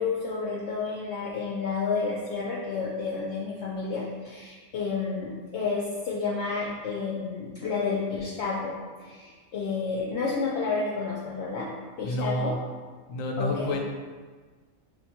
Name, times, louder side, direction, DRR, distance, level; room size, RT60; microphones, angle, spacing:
voice 1, 0.0-11.7 12.0-12.5 13.4-13.8, left 4 dB, 65° left, -5 dB, 0.8 m, -30 dB
voice 2, 12.0-12.6 13.1-13.8, left 1 dB, 90° left, 1 dB, 1.0 m, -29 dB
5.6 x 2.2 x 2.9 m, 1.4 s
omnidirectional pair, 1.4 m